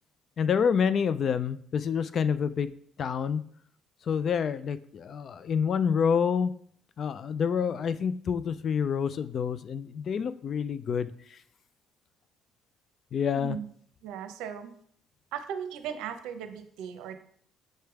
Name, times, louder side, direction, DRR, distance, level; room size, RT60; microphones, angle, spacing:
voice 1, 0.4-3.4 4.1-6.5 7.0-11.1 13.1-13.6, left 7 dB, 50° left, 14 dB, 0.4 m, -28 dB
voice 2, 13.3-13.7 14.0-14.7 15.3-17.2, right 8 dB, 85° right, 7 dB, 0.7 m, -37 dB
6.5 x 3.3 x 4.7 m, 0.62 s
cardioid pair, 100°, 0 cm